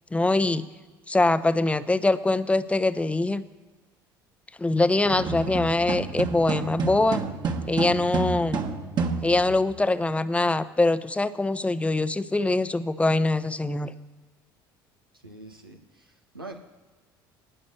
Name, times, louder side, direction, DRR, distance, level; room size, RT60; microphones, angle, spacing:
voice 1, 0.1-0.6 1.1-3.4 4.6-7.2 7.7-8.6 9.2-13.9, left 2 dB, 10° left, 13 dB, 0.9 m, -23 dB
sound 1, 5.0-9.7, right 5 dB, 40° right, 1.7 m, -30 dB
voice 2, 15.1-16.6, right 2 dB, 85° right, 2 dB, 1.2 m, -44 dB
19.0 x 6.6 x 6.8 m, 1.4 s
figure-of-eight pair, 60°, 12 cm